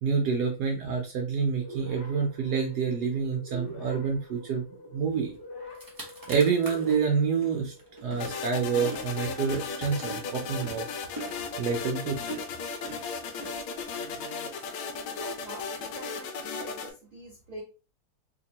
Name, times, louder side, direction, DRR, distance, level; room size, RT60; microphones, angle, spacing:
voice 1, 0.0-4.6 4.9-5.3 6.3-7.7 8.0-10.8 11.6-12.4, right 6 dB, 70° right, 1 dB, 1.0 m, -27 dB
sound 1, 1.6-9.6, equal, 40° left, 0.9 m, -46 dB
sound 2, 5.3-5.4 5.7-7.0 7.4-14.2, right 1 dB, 30° right, 0.4 m, -43 dB
sound 3, 8.2-16.9, left 5 dB, 80° left, 1.4 m, -36 dB
voice 2, 13.9-14.7 15.2-17.6, right 2 dB, 45° right, -3 dB, 1.0 m, -45 dB
3.7 x 2.9 x 2.7 m, 0.34 s
omnidirectional pair, 2.2 m